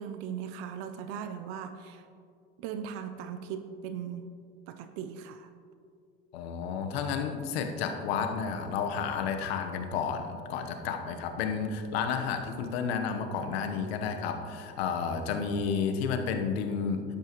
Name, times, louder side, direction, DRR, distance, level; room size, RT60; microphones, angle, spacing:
voice 1, 0.0-2.1 2.6-4.3 4.7-5.5, right 8 dB, 70° right, 9 dB, 0.7 m, -38 dB
voice 2, 6.3-17.0, left 6 dB, 85° left, 5 dB, 1.2 m, -31 dB
12.0 x 11.5 x 3.1 m, 2.4 s
supercardioid pair, 95°, 30 cm